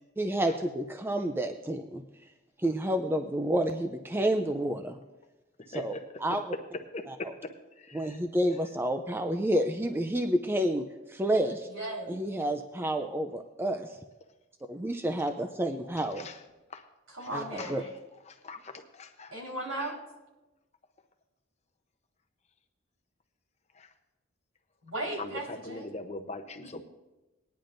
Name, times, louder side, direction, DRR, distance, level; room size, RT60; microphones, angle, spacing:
voice 1, 0.0-2.0 2.6-5.0 5.7-5.9 6.2-6.5 7.1-7.3 7.9-11.7 12.1-14.0 14.7-16.3 17.3-17.8, right 1 dB, 10° right, 6 dB, 0.4 m, -29 dB
voice 2, 6.9-7.3 7.8-8.2 16.2-16.3 16.7-16.8 17.2-17.3 17.6-17.8 18.3-19.4 19.8-19.9 23.8-23.9 25.2-26.8, left 2 dB, 30° left, 6 dB, 0.7 m, -41 dB
voice 3, 11.7-12.2 17.1-17.9 19.3-19.9 24.8-25.9, right 1 dB, 80° right, -3 dB, 4.1 m, -36 dB
19.5 x 10.5 x 2.6 m, 1.1 s
head